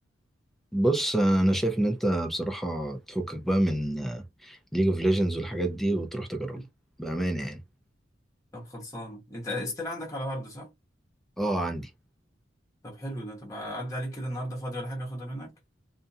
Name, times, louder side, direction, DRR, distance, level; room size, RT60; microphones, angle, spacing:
voice 1, 0.7-6.6 7.0-7.6 11.4-11.9, right 1 dB, ahead, 0.5 m, -27 dB
voice 2, 8.5-10.7 12.8-15.5, equal, 15° left, 0.9 m, -35 dB
2.5 x 2.2 x 2.6 m
head